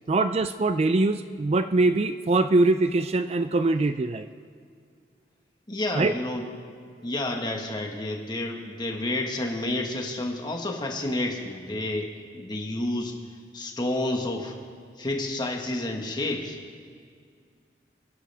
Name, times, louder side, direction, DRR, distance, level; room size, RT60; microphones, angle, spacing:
voice 1, 0.1-4.3 5.9-6.1, right 2 dB, 35° right, 10 dB, 0.4 m, -23 dB
voice 2, 5.7-6.5 7.0-13.2 13.5-14.5 15.0-16.6, left 1 dB, 25° left, 2 dB, 1.6 m, -30 dB
28.0 x 11.0 x 3.5 m, 2.2 s
head